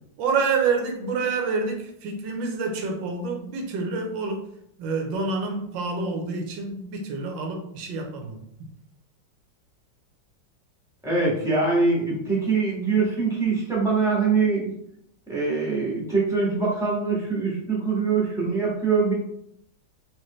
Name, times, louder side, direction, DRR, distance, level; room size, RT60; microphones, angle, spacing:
voice 1, 0.2-4.5 4.8-8.4, right 4 dB, 80° right, 3 dB, 1.4 m, -27 dB
voice 2, 11.0-14.7 15.3-19.1, right 4 dB, ahead, -5 dB, 1.2 m, -23 dB
4.5 x 3.0 x 3.1 m, 0.73 s
omnidirectional pair, 2.0 m